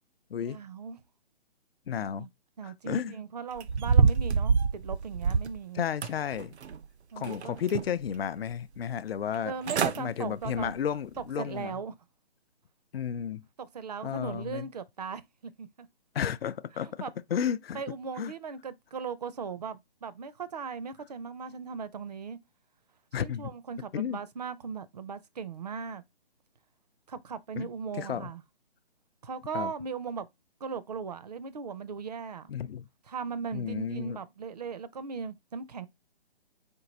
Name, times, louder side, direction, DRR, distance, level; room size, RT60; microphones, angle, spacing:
voice 1, 0.4-1.0 2.2-2.3 2.6-5.8 7.1-7.6 9.4-10.7 11.2-12.0 13.6-15.9 16.8-17.1 17.7-22.4 23.2-26.0 27.1-28.4 29.2-30.3 30.6-32.5 33.1-35.9, right 5 dB, 40° right, 0.4 m, -38 dB
voice 2, 1.9-2.3 2.6-3.1 5.7-6.6 7.2-9.5 9.8-11.7 12.9-13.5 14.0-14.7 16.1-17.0 17.3-17.8 18.2-18.3 23.1-23.5 23.9-24.2 27.6-27.7 27.9-28.3 29.5-29.7 32.5-32.9 33.5-34.2, left 8 dB, 65° left, 0.5 m, -32 dB
sound 1, 3.6-5.6 6.0-6.8 7.2-8.1 8.5-8.6 9.3-9.4 9.6-10.0 10.4-10.7 11.2-11.3, right 5 dB, 90° right, 0.6 m, -26 dB
4.5 x 2.5 x 3.8 m
hypercardioid pair, 160°, 32 cm